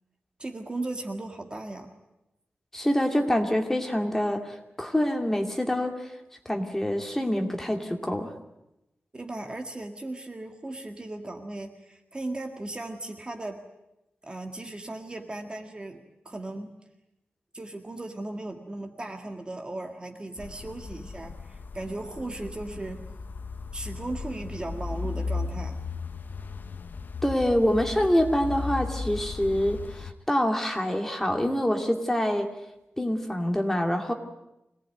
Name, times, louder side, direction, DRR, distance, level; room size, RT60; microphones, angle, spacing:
voice 1, 0.4-1.9 9.1-13.6 14.2-16.8 17.5-23.1 23.7-25.8, right 2 dB, 25° right, 4 dB, 1.8 m, -37 dB
voice 2, 2.7-6.0 6.5-8.3 27.2-32.5 33.0-34.1, equal, 10° left, 3 dB, 2.4 m, -26 dB
sound 1, 20.4-30.1, left 4 dB, 55° left, 0.9 m, -36 dB
25.0 x 19.0 x 9.4 m, 0.91 s
wide cardioid pair, 155°, 4 cm